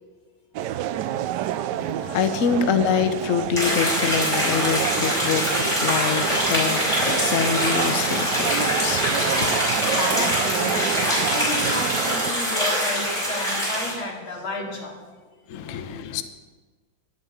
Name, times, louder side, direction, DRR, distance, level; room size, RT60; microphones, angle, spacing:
sound 1, 0.5-12.3, right 11 dB, 75° right, 1.0 m, -29 dB
voice 1, 1.7-9.6 15.5-16.2, left 7 dB, 55° left, 0.9 m, -26 dB
sound 2, 3.6-13.9, equal, 15° left, 5.6 m, -24 dB
voice 2, 9.9-15.1 15.4-16.0, left 2 dB, 85° left, 3.4 m, -32 dB
11.0 x 7.9 x 9.6 m
omnidirectional pair, 2.2 m